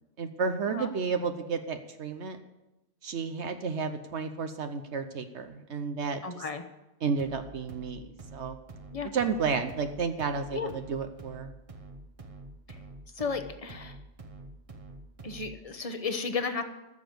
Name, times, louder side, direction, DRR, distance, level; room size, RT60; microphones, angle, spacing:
voice 1, 0.2-2.4 3.0-6.4 7.0-8.6 9.1-11.5, right 5 dB, 75° right, 7 dB, 1.1 m, -32 dB
voice 2, 6.2-6.6 8.9-9.1 10.5-10.7 12.7-12.8 13.1-14.0 15.2-16.6, left 5 dB, 35° left, 7 dB, 1.1 m, -33 dB
sound 1, 7.2-15.7, right 2 dB, 30° right, 1.0 m, -47 dB
13.5 x 7.0 x 7.9 m, 0.96 s
omnidirectional pair, 1.2 m